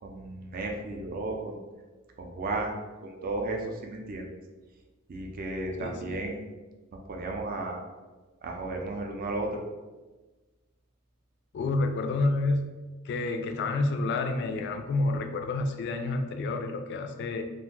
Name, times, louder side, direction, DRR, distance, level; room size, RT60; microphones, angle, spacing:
voice 1, 0.0-1.6 2.2-2.7 3.0-4.3 5.1-6.4 6.9-7.8 8.4-9.6, right 2 dB, 45° right, 1 dB, 0.4 m, -34 dB
voice 2, 5.8-6.2 11.5-12.7 13.0-17.4, left 2 dB, 55° left, 6 dB, 0.3 m, -29 dB
2.5 x 2.1 x 3.6 m, 1.3 s
head